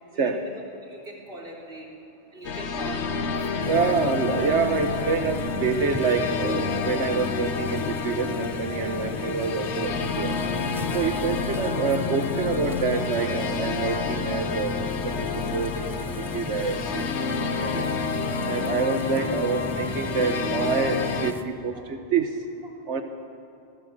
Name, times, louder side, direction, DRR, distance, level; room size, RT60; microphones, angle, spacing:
voice 1, 0.1-1.9 2.3-3.2 3.5-3.9 6.8-7.0 8.8-8.9 21.7-21.8, right 2 dB, 60° right, 0 dB, 4.2 m, -41 dB
sound 1, 2.4-21.3, left 5 dB, 85° left, 1.3 m, -29 dB
sound 2, 3.6-21.4, equal, ahead, 1.1 m, -37 dB
voice 2, 3.7-10.4 10.9-17.9 18.5-22.4 22.9-23.0, right 5 dB, 90° right, 6 dB, 1.4 m, -27 dB
sound 3, 10.8-12.2 12.7-13.9 14.9-15.0 16.0-16.1 16.6-17.1, equal, 20° right, 6.5 m, -49 dB
26.5 x 18.0 x 7.4 m, 2.5 s
omnidirectional pair, 1.1 m